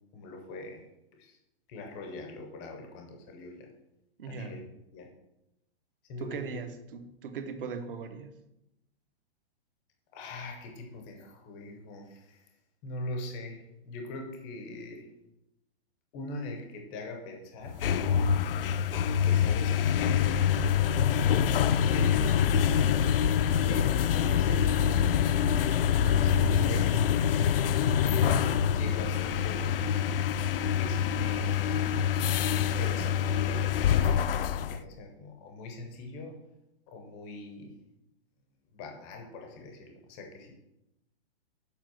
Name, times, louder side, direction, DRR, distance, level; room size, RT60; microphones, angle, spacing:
voice 1, 0.1-0.9 1.1-1.4 1.7-3.7 4.3-4.6 4.9-5.1 6.0-6.6 10.1-12.5 12.8-15.1 16.1-17.8 19.2-20.5 21.7-23.3 23.7-25.1 26.2-28.2 28.7-29.8 30.7-32.1 32.8-36.4 36.9-37.7 38.7-40.6, left 2 dB, 10° left, 3 dB, 0.6 m, -42 dB
voice 2, 4.2-4.6 6.2-8.3, right 5 dB, 60° right, 8 dB, 1.1 m, -39 dB
sound 1, 17.7-34.8, left 8 dB, 60° left, 0.5 m, -25 dB
7.3 x 5.0 x 6.2 m, 0.88 s
hypercardioid pair, 180°, 31 cm